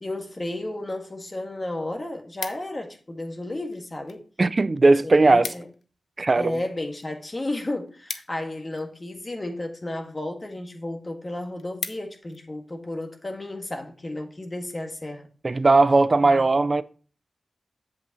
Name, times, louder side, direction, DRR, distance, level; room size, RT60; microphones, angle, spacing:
voice 1, 0.0-4.2 4.8-5.7 6.3-15.3 16.3-16.5, left 1 dB, 35° left, 1.7 m, -33 dB
sound 1, 1.2-1.3 1.6-3.0 3.7-4.2 4.5-4.6 4.9-5.0 5.2-5.8 6.2-9.0 9.8-10.1 10.6-10.7 11.0-11.1 11.4-12.4 12.9-13.1, left 5 dB, 80° left, 0.7 m, -38 dB
voice 2, 4.4-5.5 6.2-6.6 15.4-16.8, right 3 dB, 45° right, 0.4 m, -18 dB
8.3 x 7.8 x 3.0 m
cardioid pair, 45°, 0 cm